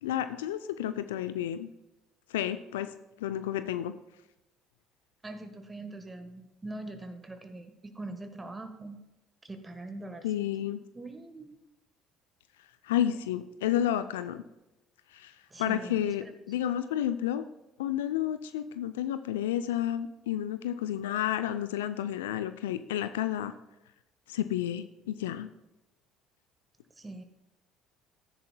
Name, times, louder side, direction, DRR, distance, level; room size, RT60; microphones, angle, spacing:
voice 1, 0.0-1.7 2.3-2.9 3.2-3.9 10.2-10.8 12.8-14.4 15.1-15.3 15.6-17.4 17.8-23.5 24.3-25.5, left 11 dB, 75° left, 11 dB, 0.4 m, -31 dB
voice 2, 5.2-9.0 9.4-10.5 10.9-11.6 15.5-16.2 27.0-27.2, right 2 dB, 20° right, 7 dB, 1.2 m, -42 dB
13.5 x 10.0 x 2.2 m, 0.96 s
hypercardioid pair, 60°, 0 cm